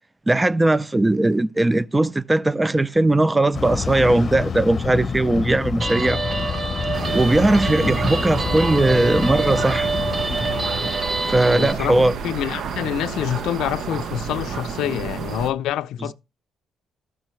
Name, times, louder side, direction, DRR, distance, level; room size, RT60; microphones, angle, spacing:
voice 1, 0.3-6.2 7.1-9.9 11.3-12.1, right 2 dB, 15° right, 0.4 m, -19 dB
sound 1, 3.5-10.9, left 6 dB, 40° left, 0.7 m, -28 dB
Guitar, 5.8-11.7, right 3 dB, 35° right, 1.2 m, -27 dB
sound 2, 6.9-15.5, right 6 dB, 65° right, 0.7 m, -31 dB
voice 2, 11.5-16.1, left 11 dB, 85° left, 0.4 m, -27 dB
13.5 x 5.6 x 3.1 m
cardioid pair, 90°, 0 cm